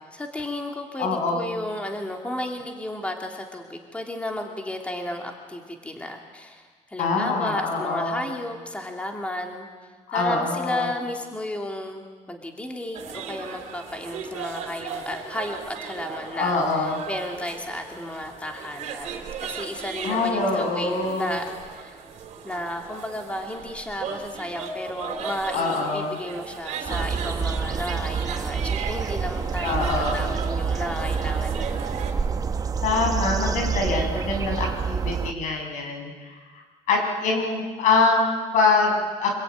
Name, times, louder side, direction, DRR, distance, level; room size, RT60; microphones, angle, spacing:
voice 1, 0.0-9.7 10.1-21.4 21.7-22.0 22.4-31.9, left 1 dB, 10° left, 3 dB, 2.6 m, -33 dB
voice 2, 1.0-1.5 7.0-8.2 10.1-10.9 16.3-17.0 20.0-21.4 25.5-26.2 29.6-30.2 32.8-36.6 36.9-39.3, left 3 dB, 80° left, 2 dB, 6.5 m, -24 dB
sound 1, 12.9-32.1, right 6 dB, 70° right, 3.5 m, -37 dB
sound 2, 26.8-35.3, right 5 dB, 30° right, 1.0 m, -27 dB
26.5 x 21.0 x 9.4 m, 1.4 s
cardioid pair, 145°, 13 cm